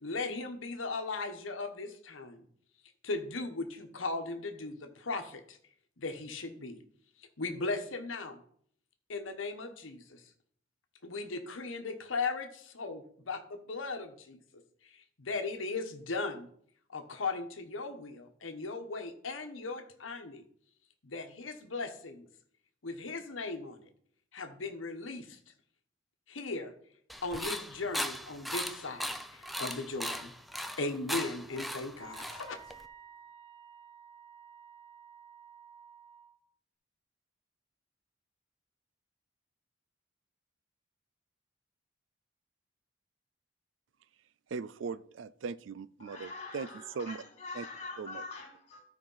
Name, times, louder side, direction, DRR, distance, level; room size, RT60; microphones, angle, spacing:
voice 1, 0.0-2.4 3.0-5.6 6.0-6.8 7.4-8.4 9.1-10.2 11.0-14.4 15.2-16.5 16.9-20.4 21.0-22.3 22.8-23.9 24.3-25.4 26.3-26.7 27.2-30.3 30.8-32.6, left 3 dB, 90° left, 5 dB, 1.1 m, -37 dB
sound 1, 27.1-32.8, equal, ahead, 0.5 m, -38 dB
Wind instrument woodwind instrument, 32.0-36.4, right 7 dB, 40° right, 2.6 m, -53 dB
voice 2, 44.5-47.2 47.5-47.7 48.0-48.2, right 5 dB, 75° right, 17 dB, 0.4 m, -39 dB
voice 3, 46.0-48.8, left 3 dB, 35° left, 4 dB, 2.5 m, -44 dB
13.0 x 4.6 x 5.5 m, 0.63 s
head